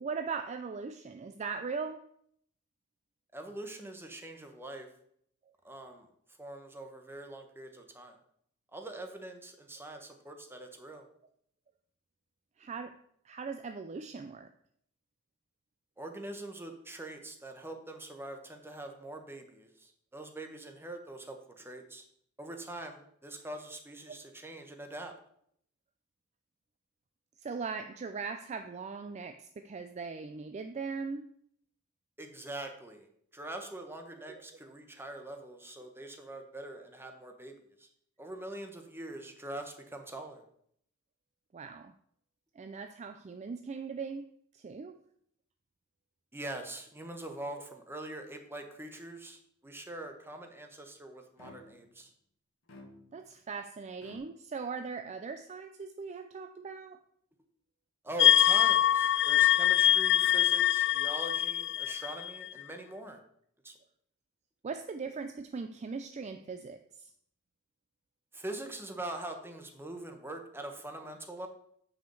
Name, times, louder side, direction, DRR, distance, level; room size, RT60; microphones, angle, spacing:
voice 1, 0.0-2.1 9.9-10.1 12.6-13.0 13.2-14.5 24.1-24.2 27.4-31.3 34.2-34.4 41.5-41.9 42.6-45.0 53.1-57.0 64.6-67.1, right 5 dB, 35° right, 8 dB, 0.4 m, -40 dB
voice 2, 3.3-4.9 5.6-6.1 6.4-8.2 8.7-11.1 16.0-22.0 22.4-25.1 32.2-33.1 33.3-37.9 38.2-40.4 46.3-52.1 58.0-63.2 63.6-63.7 68.3-71.5, right 1 dB, 10° right, 4 dB, 1.0 m, -43 dB
sound 1, 51.4-52.0 52.7-53.4 54.0-54.2, left 2 dB, 75° left, 1.3 m, -52 dB
sound 2, 58.2-62.6, left 11 dB, 55° left, 0.3 m, -24 dB
6.2 x 5.0 x 6.8 m, 0.68 s
head